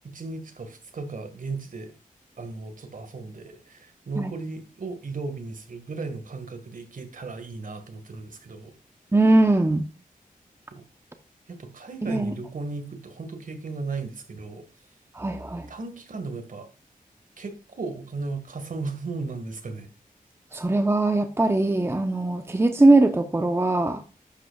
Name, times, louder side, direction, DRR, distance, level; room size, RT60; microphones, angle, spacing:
voice 1, 0.0-1.9 2.4-8.7 10.7-10.8 11.5-14.6 15.7-16.7 17.4-19.9, right 3 dB, 65° right, 7 dB, 1.9 m, -36 dB
voice 2, 9.1-9.8 12.0-12.3 15.1-15.7 20.5-24.0, right 2 dB, 15° right, 7 dB, 0.9 m, -21 dB
11.0 x 8.2 x 2.4 m, 0.33 s
wide cardioid pair, 90°, 15 cm